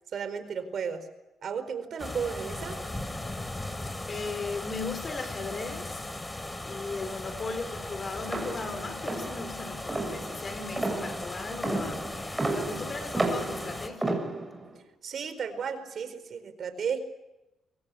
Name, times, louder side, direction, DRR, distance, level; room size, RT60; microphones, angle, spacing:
voice 1, 0.1-1.1 1.4-2.8 15.0-17.0, right 6 dB, 55° right, 11 dB, 4.5 m, -34 dB
sound 1, 2.0-13.9, left 1 dB, 15° left, 3.6 m, -38 dB
voice 2, 4.1-6.0 6.6-14.2, left 4 dB, 35° left, 10 dB, 4.4 m, -37 dB
sound 2, 8.3-14.7, right 2 dB, 15° right, 6.8 m, -32 dB
25.5 x 23.0 x 8.6 m, 0.95 s
cardioid pair, 90°, 0 cm